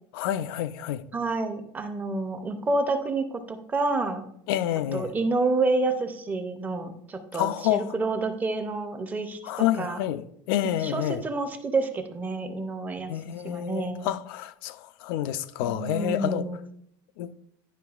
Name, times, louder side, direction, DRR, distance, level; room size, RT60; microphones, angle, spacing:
voice 1, 0.1-1.0 4.5-5.1 7.3-7.9 9.4-11.2 13.1-16.5 17.2-17.3, left 12 dB, 75° left, 0.4 m, -28 dB
voice 2, 1.1-4.3 4.9-10.0 10.6-13.1 13.4-14.1 15.6-16.6, right 3 dB, 15° right, 0.5 m, -29 dB
10.0 x 5.3 x 2.3 m
cardioid pair, 165°, 12 cm